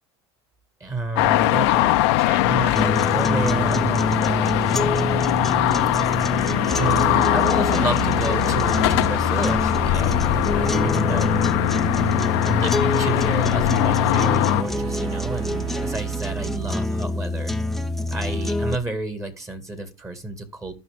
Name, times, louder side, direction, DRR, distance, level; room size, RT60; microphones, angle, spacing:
voice 1, 0.8-4.7 6.7-11.3 12.4-17.6 18.1-20.7, right 2 dB, 20° right, 9 dB, 2.1 m, -30 dB
sound 1, 1.2-14.6, left 16 dB, 70° left, 0.8 m, -21 dB
sound 2, 2.8-18.8, equal, ahead, 0.7 m, -26 dB
sound 3, 3.6-16.0, right 3 dB, 40° right, 2.4 m, -36 dB
14.0 x 5.5 x 3.6 m, 0.30 s
hypercardioid pair, 90°, 14 cm